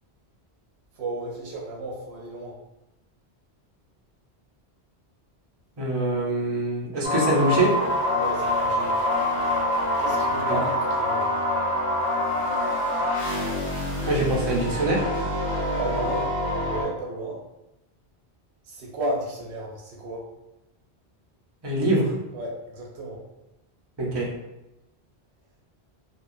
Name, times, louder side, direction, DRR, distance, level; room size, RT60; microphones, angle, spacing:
voice 1, 1.0-2.6 8.1-8.9 10.0-11.3 15.8-16.3 16.7-17.4 18.7-20.2 22.3-23.2, right 2 dB, 85° right, -2 dB, 0.8 m, -33 dB
voice 2, 5.8-7.8 10.5-10.6 14.1-15.1 21.6-22.1 24.0-24.3, right 2 dB, 30° right, -3 dB, 0.5 m, -24 dB
sound 1, 7.0-16.8, left 1 dB, 30° left, 1.1 m, -25 dB
2.8 x 2.2 x 2.5 m, 0.95 s
omnidirectional pair, 1.1 m